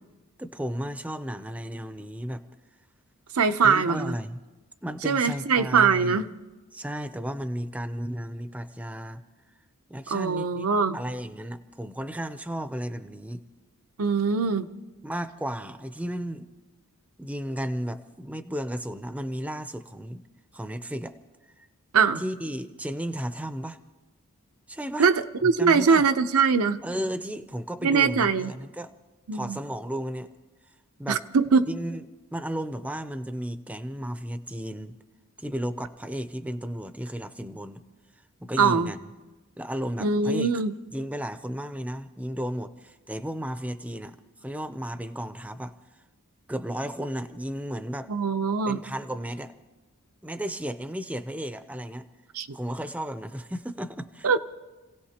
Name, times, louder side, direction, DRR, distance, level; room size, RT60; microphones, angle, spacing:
voice 1, 0.4-2.4 3.6-4.4 4.8-6.2 6.7-9.2 9.9-10.7 10.9-13.4 15.0-16.5 17.2-20.2 20.5-21.2 22.2-23.8 24.7-25.1 25.6-26.0 26.8-28.9 29.3-30.3 31.0-31.2 31.7-32.0 32.3-34.9 35.4-37.8 38.4-39.1 39.6-40.6 40.9-45.7 46.5-48.1 48.7-49.5 50.2-52.1 52.5-54.4, equal, 5° right, 10 dB, 0.5 m, -34 dB
voice 2, 3.3-4.1 5.0-6.3 10.1-11.0 14.0-14.7 21.9-22.2 25.0-25.1 25.4-26.8 27.8-28.5 29.3-29.6 31.1-31.7 38.6-38.9 40.0-40.7 48.1-48.8 52.4-52.5 54.2-54.4, right 5 dB, 75° right, 8 dB, 0.7 m, -22 dB
30.0 x 17.0 x 2.9 m, 1.2 s
head